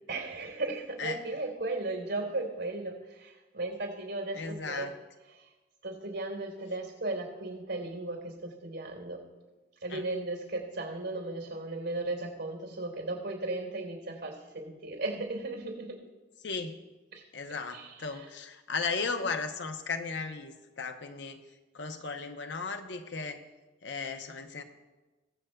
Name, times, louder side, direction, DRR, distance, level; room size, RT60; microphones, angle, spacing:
voice 1, 0.1-4.9 5.3-5.5 5.8-9.2 9.8-16.0 17.1-17.2 17.7-18.3, right 2 dB, 85° right, 1 dB, 3.7 m, -36 dB
voice 2, 4.3-4.9 9.9-10.0 16.4-16.7 17.3-21.4 21.7-23.4 23.8-24.6, left 4 dB, 75° left, 7 dB, 0.8 m, -36 dB
22.0 x 7.7 x 2.3 m, 1.2 s
head